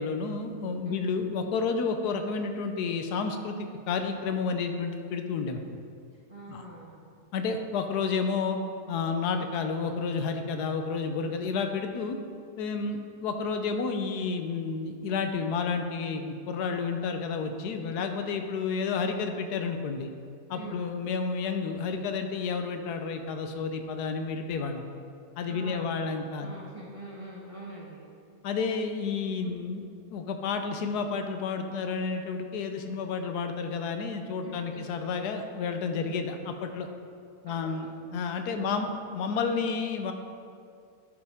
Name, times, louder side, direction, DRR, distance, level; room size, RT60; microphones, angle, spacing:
voice 1, 0.0-5.6 6.5-6.6 7.3-8.6 8.9-12.2 12.6-20.1 20.5-24.8 25.4-26.5 28.4-29.8 30.1-36.9 37.4-37.9 38.1-40.1, left 5 dB, 85° left, 6 dB, 1.2 m, -31 dB
voice 2, 6.3-7.1 12.7-13.0 20.5-20.8 25.4-26.1 26.4-28.1 29.4-29.6 34.4-34.9 36.0-36.1 37.5-37.9 38.5-38.8, right 2 dB, 25° right, -5 dB, 0.8 m, -44 dB
11.0 x 5.0 x 3.5 m, 2.3 s
omnidirectional pair, 1.7 m